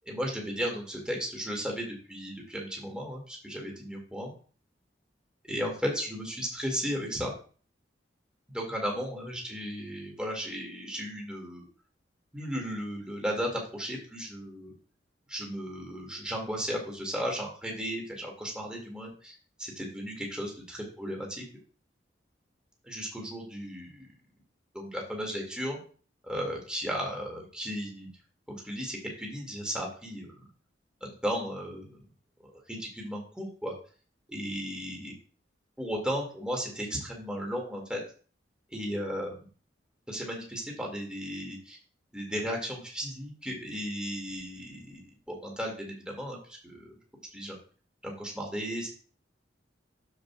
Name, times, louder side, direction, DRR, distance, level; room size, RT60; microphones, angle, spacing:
voice 1, 0.0-4.3 5.4-7.3 8.5-11.7 12.3-14.7 15.3-21.4 22.8-24.1 24.7-25.8 26.2-28.1 28.5-30.5 31.0-32.0 32.4-33.7 34.3-35.1 35.8-38.0 38.7-39.4 40.1-41.8 42.1-45.0 45.3-46.9 47.3-47.6 48.0-48.9, equal, 5° right, -1 dB, 2.2 m, -35 dB
13.5 x 5.1 x 2.4 m, 0.40 s
head